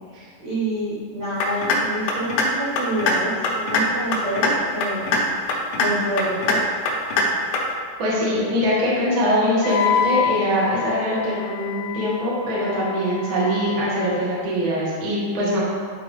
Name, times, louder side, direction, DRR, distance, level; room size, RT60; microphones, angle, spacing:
voice 1, 0.4-5.4 5.7-6.6, right 1 dB, 75° right, -11 dB, 1.5 m, -27 dB
sound 1, 1.4-1.8 2.1-2.4 2.8-3.1 3.4-3.8 4.1-4.5 4.8-5.2 5.5-5.9 6.2-6.5 6.9-7.2 7.5-7.6, left 4 dB, 75° left, 2.7 m, -21 dB
voice 2, 8.0-15.6, equal, 60° right, -7 dB, 1.3 m, -22 dB
Wind instrument woodwind instrument, 9.6-14.3, left 8 dB, 90° left, 3.2 m, -27 dB
11.0 x 4.5 x 3.3 m, 2.1 s
omnidirectional pair, 5.5 m